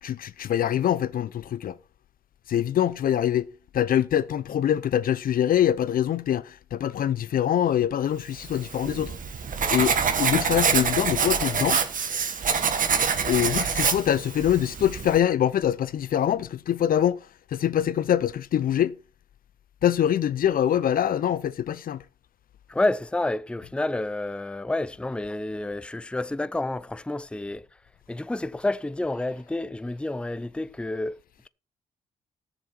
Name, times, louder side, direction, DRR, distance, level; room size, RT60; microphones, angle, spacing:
voice 1, 0.0-1.8 2.5-3.5 3.7-9.2 9.7-11.8 13.3-19.0 19.8-22.0, left 10 dB, 60° left, 0.5 m, -24 dB
Writing, 8.5-15.2, right 6 dB, 55° right, 1.5 m, -26 dB
voice 2, 22.7-27.6 28.1-31.2, left 2 dB, 5° left, 0.5 m, -29 dB
15.0 x 6.9 x 4.4 m
hypercardioid pair, 45°, 17 cm